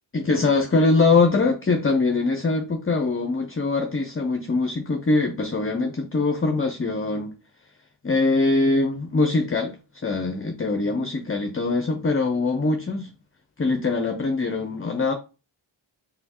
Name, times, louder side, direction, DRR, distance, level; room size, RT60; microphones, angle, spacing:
voice 1, 0.1-7.3 8.0-13.1 13.6-15.1, left 3 dB, 25° left, 0.6 m, -23 dB
4.3 x 3.6 x 2.9 m
cardioid pair, 45°, 49 cm